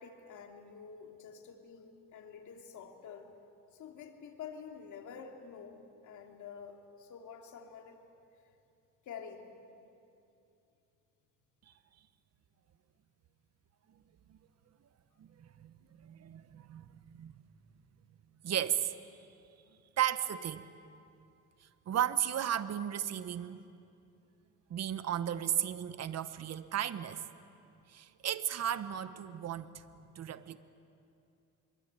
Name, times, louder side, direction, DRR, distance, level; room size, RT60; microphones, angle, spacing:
voice 1, 0.0-3.3 3.7-8.0 9.0-9.4, left 6 dB, 75° left, 3 dB, 2.9 m, -48 dB
voice 2, 15.2-17.3 18.4-19.0 20.0-20.6 21.9-23.6 24.7-27.2 27.9-29.8 30.1-30.6, right 10 dB, 60° right, 13 dB, 1.0 m, -35 dB
25.0 x 23.0 x 9.0 m, 2.6 s
cardioid pair, 90°, 30 cm